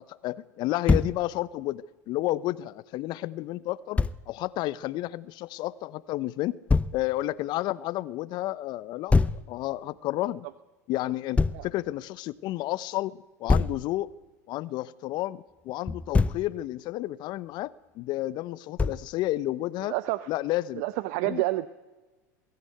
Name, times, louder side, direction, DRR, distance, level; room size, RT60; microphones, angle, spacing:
voice 1, 0.0-4.0 4.3-6.6 6.9-9.2 9.5-10.5 10.9-14.1 14.5-19.9 20.3-20.8 21.2-21.4, left 16 dB, 50° left, 18 dB, 0.8 m, -31 dB
Thump thud, 0.9-1.2 4.0-4.2 6.7-7.0 9.1-9.4 11.4-11.6 13.5-13.8 15.9-16.5 18.8-19.1, left 4 dB, 15° left, 0.7 m, -23 dB
voice 2, 19.8-20.3 20.8-21.7, right 18 dB, 65° right, 14 dB, 0.8 m, -28 dB
21.5 x 13.5 x 9.2 m, 1.2 s
hypercardioid pair, 90°, 9 cm